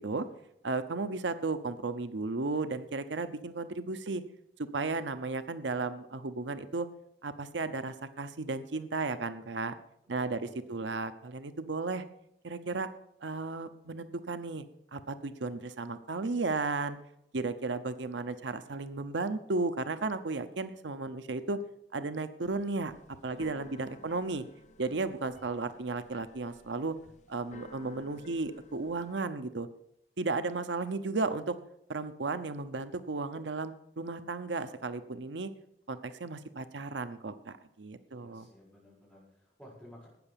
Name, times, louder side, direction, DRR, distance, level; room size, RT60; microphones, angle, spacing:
voice 1, 0.6-4.2 4.6-6.9 7.2-9.8 10.1-10.4 10.7-12.0 12.4-12.9 13.2-14.6 14.9-17.0 17.3-21.6 21.9-22.9 23.2-24.4 24.8-27.0 27.3-29.7 30.2-31.6 31.9-35.5 35.9-38.5, right 3 dB, 85° right, 11 dB, 0.8 m, -34 dB
voice 2, 10.1-10.8 23.3-23.4 23.6-24.0 38.0-40.1, equal, 10° left, -5 dB, 6.6 m, -56 dB
Keyboard (musical), 22.4-29.1, left 2 dB, 40° left, 0.8 m, -55 dB
13.0 x 9.1 x 6.9 m, 0.79 s
head